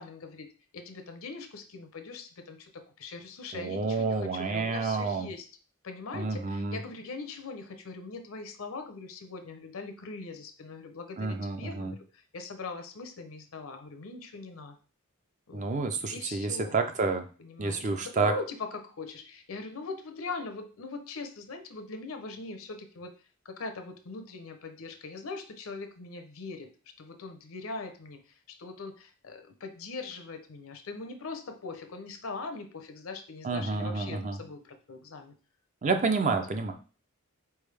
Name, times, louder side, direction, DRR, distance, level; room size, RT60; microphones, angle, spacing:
voice 1, 0.0-5.5 5.8-14.8 15.5-15.7 16.1-16.8 17.4-23.1 23.4-26.7 27.0-28.2 28.6-35.3, left 3 dB, 70° left, 7 dB, 0.7 m, -41 dB
voice 2, 3.5-5.3 6.1-6.8 11.2-11.9 15.5-17.3 17.6-18.3 33.4-34.4 35.8-36.7, right 4 dB, 35° right, 6 dB, 0.5 m, -29 dB
4.4 x 3.5 x 3.3 m, 0.37 s
head